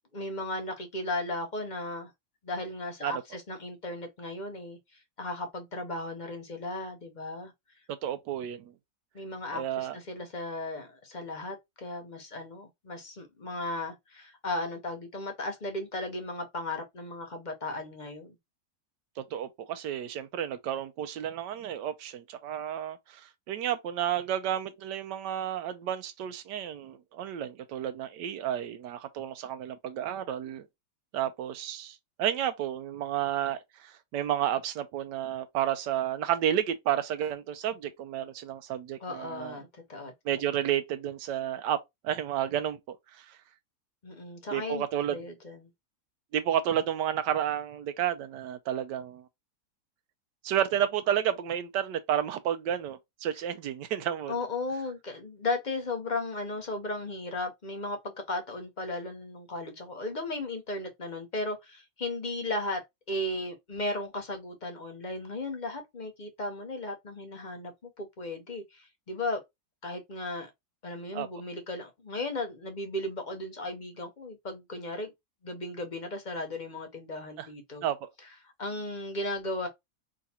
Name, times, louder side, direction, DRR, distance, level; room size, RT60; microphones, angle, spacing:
voice 1, 0.1-2.1 2.4-7.5 9.1-18.3 39.0-40.1 44.0-44.8 45.1-45.7 54.3-69.4 69.8-70.5 70.8-75.1 75.4-77.9 78.6-79.7, left 2 dB, 40° left, 0.6 m, -36 dB
voice 2, 7.9-8.7 9.5-10.0 19.2-30.7 31.1-39.6 40.2-41.8 42.0-43.4 44.5-45.2 46.3-49.2 50.4-54.4 71.1-71.3 77.4-77.5 77.8-78.1, right 10 dB, 80° right, 1.3 m, -31 dB
3.9 x 2.4 x 4.2 m
omnidirectional pair, 1.8 m